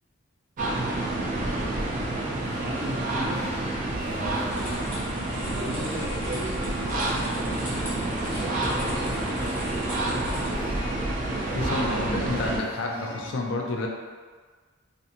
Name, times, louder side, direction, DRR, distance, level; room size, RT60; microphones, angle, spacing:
sound 1, 0.6-12.6, right 2 dB, 40° right, 0.3 m, -29 dB
voice 1, 1.3-4.8 5.5-10.7 12.1-12.5, right 1 dB, 55° right, -5 dB, 0.7 m, -38 dB
sound 2, 1.4-13.3, left 1 dB, 85° left, 1.0 m, -40 dB
sound 3, 4.5-10.5, equal, 10° left, 0.6 m, -37 dB
voice 2, 11.5-13.9, left 2 dB, 60° left, 0 dB, 0.4 m, -30 dB
2.5 x 2.5 x 2.7 m, 1.5 s
head